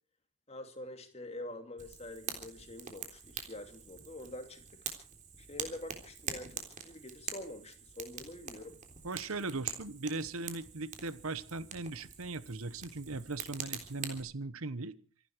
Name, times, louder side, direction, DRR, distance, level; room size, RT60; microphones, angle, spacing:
voice 1, 0.5-4.8 5.4-8.8, left 1 dB, 30° left, 7 dB, 2.6 m, -46 dB
Fire, 1.8-14.2, right 7 dB, 35° right, 3.5 m, -45 dB
voice 2, 9.0-14.9, right 3 dB, 75° right, 15 dB, 1.1 m, -39 dB
27.0 x 11.5 x 4.6 m, 0.40 s
head